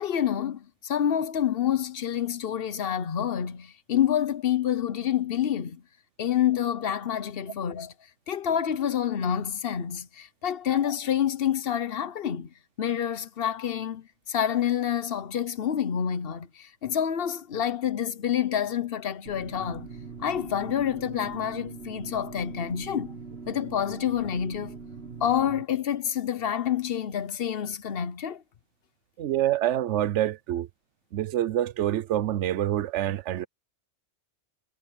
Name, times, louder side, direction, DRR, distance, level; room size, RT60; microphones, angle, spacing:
voice 1, 0.0-5.8 6.2-7.9 8.3-12.5 12.8-19.9 20.2-23.2 23.5-24.8 25.2-28.4, left 9 dB, 55° left, 1.0 m, -28 dB
sound 1, 19.3-25.6, right 4 dB, 65° right, 2.0 m, -41 dB
voice 2, 29.2-30.7 31.1-33.5, right 12 dB, 80° right, 1.0 m, -26 dB
omnidirectional pair, 1.2 m